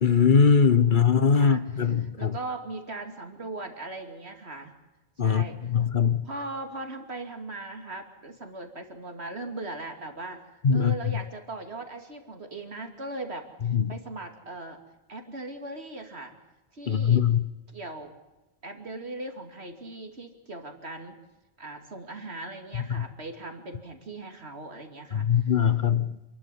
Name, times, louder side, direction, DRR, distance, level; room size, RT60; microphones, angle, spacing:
voice 1, 0.0-2.4 5.2-6.2 10.6-11.1 13.7-13.9 16.9-17.4 25.1-26.2, left 6 dB, 50° left, 1.1 m, -21 dB
voice 2, 1.3-4.7 5.2-5.6 6.2-13.5 13.9-14.8 15.1-16.3 16.7-17.3 17.7-18.1 18.6-21.2 21.6-25.5, right 2 dB, 85° right, 3.0 m, -39 dB
27.5 x 12.0 x 10.0 m
omnidirectional pair, 1.1 m